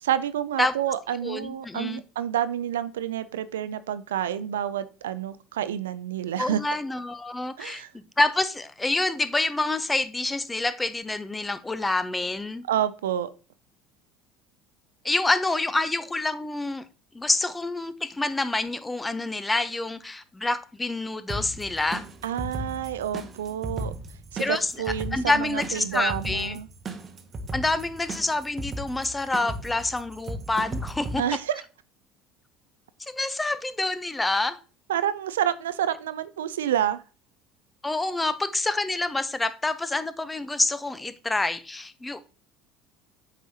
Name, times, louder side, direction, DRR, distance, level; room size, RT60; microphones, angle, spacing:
voice 1, 0.0-6.6 7.6-7.9 12.7-13.3 22.2-23.9 24.3-26.7 31.2-31.6 34.9-37.0, right 10 dB, 80° right, 0.3 m, -28 dB
voice 2, 1.2-2.0 6.4-12.6 15.0-16.9 17.1-22.0 24.4-24.7 25.1-26.6 27.5-31.2 33.1-34.6 37.8-42.2, left 2 dB, 15° left, 0.6 m, -27 dB
sound 1, 21.3-31.2, right 1 dB, 35° right, 0.8 m, -36 dB
7.7 x 4.7 x 2.7 m
hypercardioid pair, 70°, 0 cm